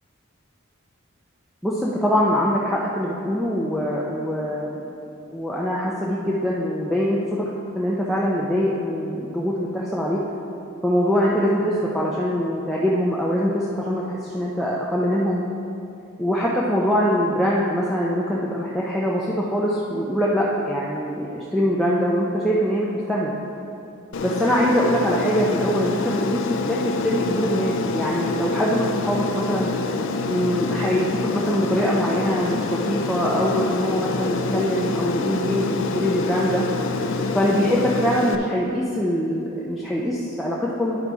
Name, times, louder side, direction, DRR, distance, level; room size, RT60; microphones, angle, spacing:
voice 1, 1.6-4.8 5.3-10.2 10.8-15.4 16.2-23.3 24.2-29.7 30.3-36.6 37.3-41.0, equal, ahead, -6 dB, 0.5 m, -23 dB
Aircraft, 24.1-38.3, left 3 dB, 65° left, 0.4 m, -26 dB
11.0 x 4.0 x 4.7 m, 2.6 s
head